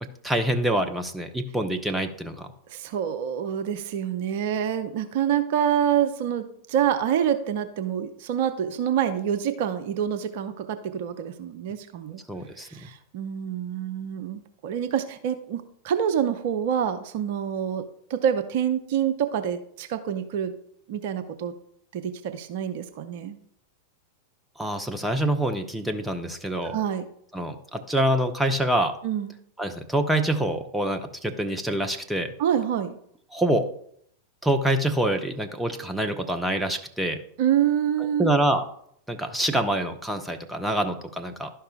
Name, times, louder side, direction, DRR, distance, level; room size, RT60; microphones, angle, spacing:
voice 1, 0.0-2.5 12.3-12.7 24.6-26.8 27.3-28.9 29.6-32.3 33.3-33.7 34.4-37.2 38.2-38.6 39.1-41.5, right 1 dB, 5° right, 5 dB, 0.7 m, -26 dB
voice 2, 2.7-12.2 12.6-17.8 18.1-20.5 20.9-21.5 21.9-23.4 26.6-27.0 29.0-29.4 32.4-33.0 37.4-38.4, right 9 dB, 50° right, 9 dB, 0.5 m, -27 dB
11.5 x 5.5 x 2.4 m, 0.67 s
figure-of-eight pair, 90°, 0 cm